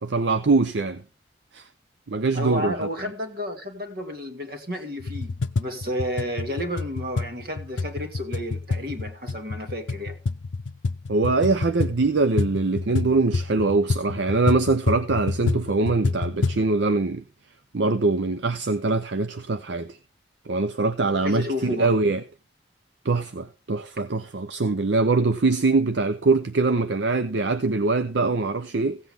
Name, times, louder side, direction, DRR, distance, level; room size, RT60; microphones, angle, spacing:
voice 1, 0.0-1.0 1.5-1.7 2.1-2.7 11.1-17.2 17.7-20.0 20.5-22.2 23.0-29.0, right 3 dB, 70° right, 0.6 m, -23 dB
voice 2, 2.3-10.2 21.2-22.0, left 1 dB, 50° right, 2.0 m, -31 dB
sound 1, 5.0-16.7, left 3 dB, 75° left, 0.5 m, -28 dB
16.0 x 8.0 x 3.5 m
head